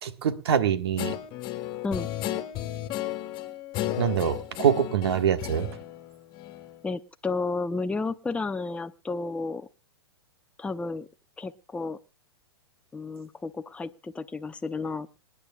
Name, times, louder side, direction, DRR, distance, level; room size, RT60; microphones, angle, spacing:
voice 1, 0.0-1.1 4.0-5.7, right 8 dB, 70° right, 9 dB, 1.6 m, -24 dB
Guitar, 1.0-6.8, left 13 dB, 35° left, 1.7 m, -34 dB
voice 2, 6.8-9.7 10.6-11.1 11.4-12.0 12.9-15.1, left 3 dB, 10° left, 9 dB, 0.7 m, -32 dB
26.5 x 10.0 x 2.3 m, 0.29 s
hypercardioid pair, 115°, 14 cm